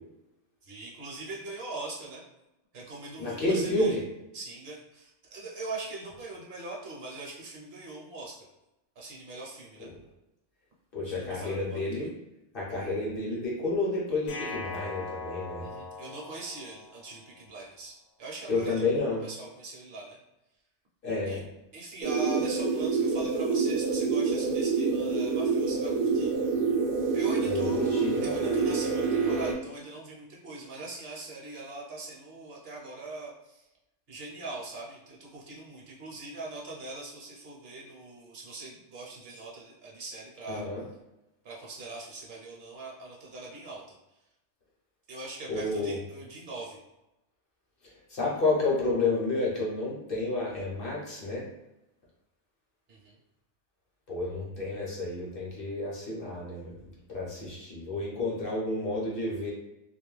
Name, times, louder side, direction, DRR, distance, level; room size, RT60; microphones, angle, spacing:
voice 1, 0.6-2.2 2.7-4.0 4.3-8.3 9.0-9.9 11.1-11.9 15.6-20.2 21.3-21.4 21.7-26.3 27.1-33.6 34.1-40.7 41.4-44.0 45.1-46.8 52.9-53.2, right 2 dB, 60° right, -3 dB, 0.8 m, -41 dB
voice 2, 3.2-4.0 9.8-9.9 10.9-12.1 12.5-15.6 18.5-19.2 21.0-21.4 27.5-28.6 40.5-40.8 45.5-46.0 48.1-51.4 54.1-56.8 57.1-59.5, left 2 dB, 55° left, -5 dB, 0.8 m, -30 dB
sound 1, 14.3-17.4, left 3 dB, 75° left, 0.4 m, -40 dB
sound 2, 22.0-29.5, right 4 dB, 90° right, 0.3 m, -27 dB
2.3 x 2.1 x 3.1 m, 0.93 s
omnidirectional pair, 1.3 m